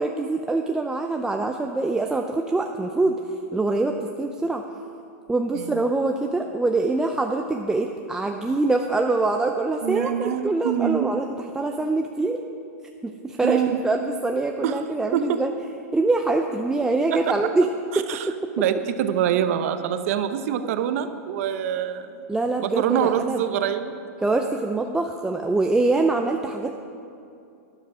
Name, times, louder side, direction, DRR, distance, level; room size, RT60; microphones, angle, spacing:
voice 1, 0.0-3.2 3.5-4.6 5.3-11.3 11.5-12.4 13.0-15.5 15.9-17.7 18.0-18.1 22.3-23.4 24.2-26.7, right 3 dB, 5° right, 3 dB, 0.5 m, -24 dB
voice 2, 9.8-11.1 13.4-13.8 14.6-14.8 15.1-15.4 17.3-17.4 17.9-18.3 18.6-22.2 22.6-24.0, right 10 dB, 55° right, 9 dB, 0.8 m, -25 dB
12.5 x 11.5 x 4.9 m, 2.6 s
hypercardioid pair, 135°, 9 cm